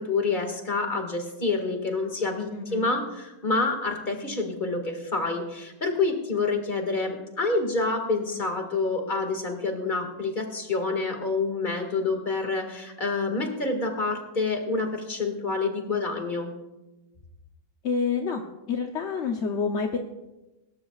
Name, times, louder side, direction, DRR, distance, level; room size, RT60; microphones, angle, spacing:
voice 1, 0.0-16.5, left 3 dB, 25° left, 3 dB, 2.0 m, -28 dB
voice 2, 2.5-2.9 17.8-18.4 18.7-20.0, left 5 dB, 50° left, 3 dB, 0.9 m, -28 dB
25.0 x 13.0 x 2.4 m, 1.0 s
omnidirectional pair, 1.9 m